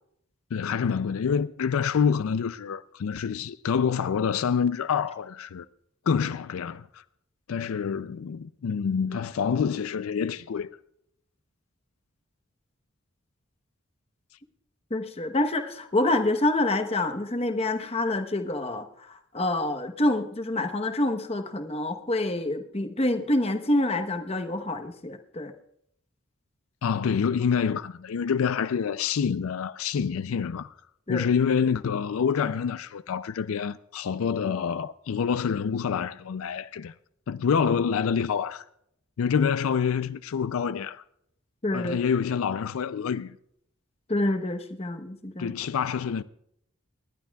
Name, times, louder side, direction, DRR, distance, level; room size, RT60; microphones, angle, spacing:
voice 1, 0.5-5.7 6.1-6.9 7.5-10.8 26.8-30.7 31.1-36.9 37.3-38.6 39.2-41.0 41.7-43.4 45.4-46.2, left 6 dB, 90° left, 0.4 m, -27 dB
voice 2, 14.9-25.5 31.1-31.3 41.6-42.0 44.1-45.5, left 1 dB, 30° left, 1.0 m, -27 dB
28.5 x 11.5 x 2.3 m
head